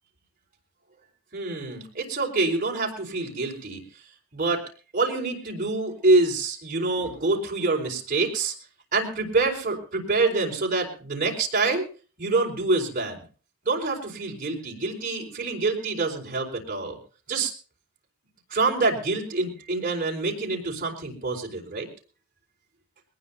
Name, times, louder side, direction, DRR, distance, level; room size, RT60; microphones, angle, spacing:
voice 1, 1.3-3.8 4.3-4.6 4.9-8.5 8.9-11.8 12.2-13.2 13.6-17.0 17.3-17.5 18.5-21.9, right 3 dB, 40° right, -1 dB, 4.5 m, -26 dB
21.5 x 19.0 x 2.7 m, 0.38 s
head